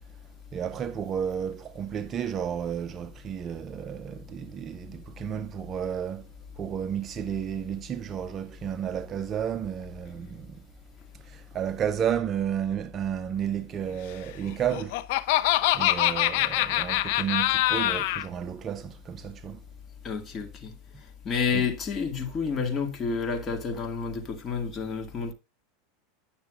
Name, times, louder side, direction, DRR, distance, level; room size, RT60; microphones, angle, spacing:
voice 1, 0.5-6.3 6.6-10.6 11.2-15.0 15.7-19.6 21.5-21.6, right 9 dB, 30° right, 0.6 m, -32 dB
Laughter, 14.5-18.2, left 15 dB, 60° left, 0.6 m, -24 dB
voice 2, 20.0-20.7 21.2-25.3, left 5 dB, 25° left, 2.0 m, -29 dB
9.8 x 6.7 x 2.4 m
supercardioid pair, 130°, 0 cm